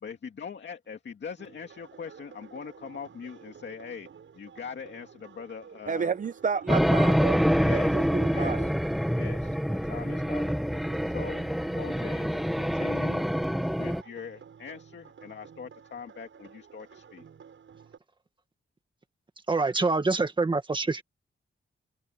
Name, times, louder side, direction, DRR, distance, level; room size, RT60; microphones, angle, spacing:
voice 1, 0.0-4.1 4.3-6.1 7.5-8.7 9.1-10.5 11.0-11.5 11.7-13.2 13.8-17.2, left 6 dB, 60° left, 2.2 m, -42 dB
sound 1, 1.4-18.0, right 7 dB, 75° right, 7.4 m, -52 dB
voice 2, 5.9-7.4 7.7-8.7, right 6 dB, 40° right, 0.7 m, -31 dB
sound 2, 6.7-14.0, equal, ahead, 1.0 m, -26 dB
voice 3, 19.5-21.0, right 3 dB, 25° right, 1.8 m, -25 dB
wide cardioid pair, 175°, 21 cm